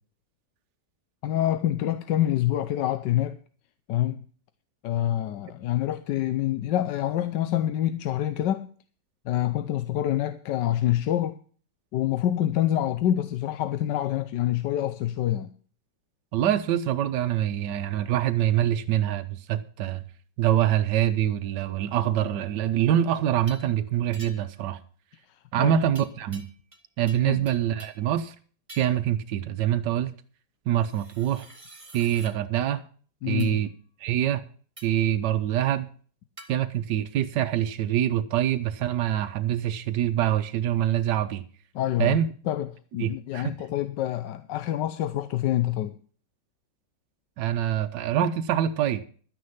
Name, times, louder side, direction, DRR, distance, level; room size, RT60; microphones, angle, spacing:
voice 1, 1.2-3.4 3.9-4.2 4.8-8.7 9.2-11.4 11.9-15.5 25.3-25.8 27.3-27.5 33.2-33.6 41.7-42.2 42.5-46.0, left 12 dB, 75° left, 1.3 m, -26 dB
voice 2, 16.3-20.0 20.4-24.8 25.5-26.5 27.0-28.3 28.7-30.1 30.7-31.5 31.9-32.8 33.3-33.7 34.0-34.4 34.8-35.9 36.5-41.4 42.0-42.3 43.0-43.5 47.4-49.0, right 11 dB, 75° right, 1.4 m, -25 dB
sound 1, 23.5-23.7 24.1-24.6 25.9-26.8 27.1-28.1 28.7-29.1 30.8-32.3 33.4-33.6 34.8-35.1 36.4-36.5, right 2 dB, 20° right, 1.5 m, -48 dB
12.0 x 9.6 x 5.7 m
omnidirectional pair, 1.9 m